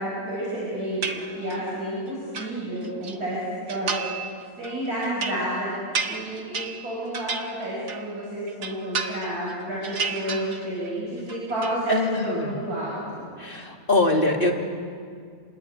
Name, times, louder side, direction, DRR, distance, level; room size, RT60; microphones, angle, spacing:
voice 1, 0.0-3.4 3.7-4.0 4.6-5.7 6.0-12.0 12.2-13.2, right 1 dB, 70° right, -7 dB, 7.7 m, -30 dB
sound 1, 1.0-1.7 2.1-3.2 3.7-4.3 4.6-8.2 8.5-9.5 9.8-10.9 11.2-11.8, right 5 dB, 90° right, 2.1 m, -32 dB
voice 2, 11.9-12.5 13.4-14.5, left 2 dB, 35° left, 1 dB, 2.7 m, -23 dB
29.5 x 21.5 x 9.0 m, 2.2 s
omnidirectional pair, 1.7 m